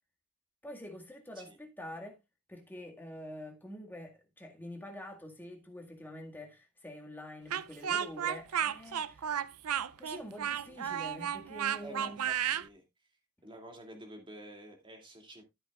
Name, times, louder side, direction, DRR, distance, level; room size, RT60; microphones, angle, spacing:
voice 1, 0.6-2.2 2.5-9.3 10.0-12.3, left 1 dB, 10° left, 1.9 m, -46 dB
Speech, 7.5-12.7, right 9 dB, 75° right, 0.5 m, -33 dB
voice 2, 11.8-12.8 13.4-15.4, right 1 dB, 20° right, 2.6 m, -50 dB
13.0 x 8.0 x 2.4 m
head